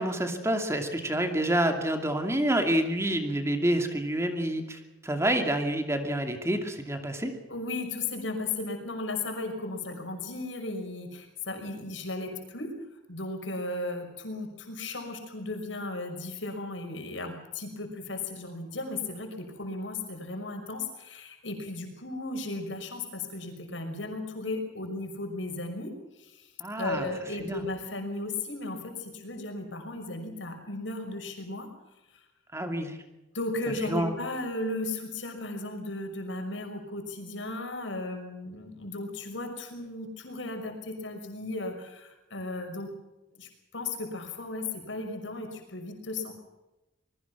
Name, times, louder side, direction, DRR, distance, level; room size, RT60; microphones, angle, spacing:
voice 1, 0.0-7.3 26.6-27.1 27.4-27.6 32.5-33.0 33.9-34.1, right 1 dB, 15° right, 5 dB, 2.6 m, -28 dB
voice 2, 7.5-12.8 13.1-31.7 33.3-42.9 43.4-46.3, left 2 dB, 80° left, 5 dB, 5.9 m, -35 dB
25.5 x 21.5 x 6.1 m, 0.98 s
head